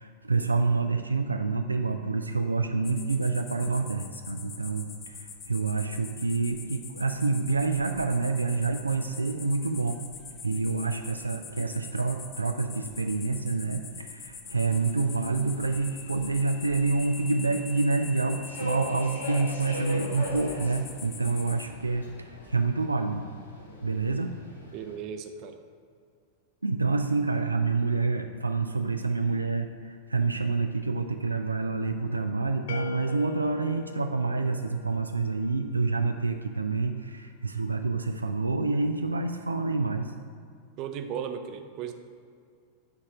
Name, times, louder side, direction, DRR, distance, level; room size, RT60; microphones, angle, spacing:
voice 1, 0.0-10.0 10.4-23.3 23.8-24.3 26.6-40.1, right 3 dB, 80° right, 6 dB, 0.3 m, -28 dB
sound 1, 2.8-21.7, left 5 dB, 25° left, 0.7 m, -45 dB
Subway metro underground, 14.4-25.0, left 1 dB, 80° left, 1.2 m, -41 dB
voice 2, 24.7-25.6 40.8-41.9, right 7 dB, 40° right, 7 dB, 0.6 m, -36 dB
sound 2, 32.7-35.5, left 9 dB, 55° left, 0.4 m, -42 dB
8.8 x 4.2 x 4.9 m, 2.2 s
figure-of-eight pair, 90°, 0 cm